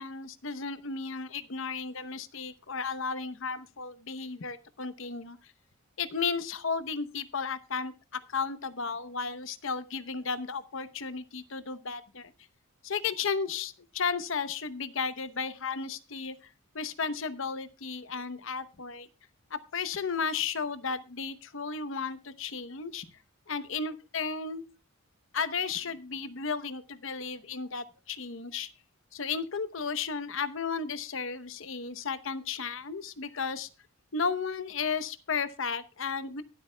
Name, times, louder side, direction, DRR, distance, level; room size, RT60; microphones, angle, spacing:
voice 1, 0.0-5.4 6.0-12.3 12.8-16.4 16.7-19.1 19.5-23.1 23.5-24.6 25.3-28.7 29.1-33.7 34.1-36.4, left 5 dB, 60° left, 13 dB, 0.9 m, -34 dB
23.0 x 8.2 x 2.2 m, 0.31 s
head